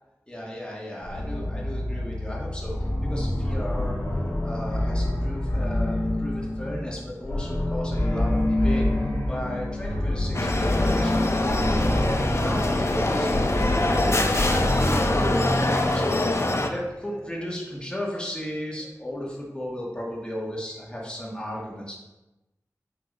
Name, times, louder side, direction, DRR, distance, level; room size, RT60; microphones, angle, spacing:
voice 1, 0.3-2.7 3.0-4.0 4.4-8.9 9.3-15.6 15.9-16.2 16.7-22.0, equal, 15° left, -4 dB, 1.8 m, -34 dB
sound 1, 1.0-16.7, left 1 dB, 65° left, 2.2 m, -27 dB
sound 2, 10.3-16.7, left 2 dB, 45° left, 0.7 m, -24 dB
8.7 x 3.4 x 4.2 m, 1.0 s
wide cardioid pair, 45°, 6 cm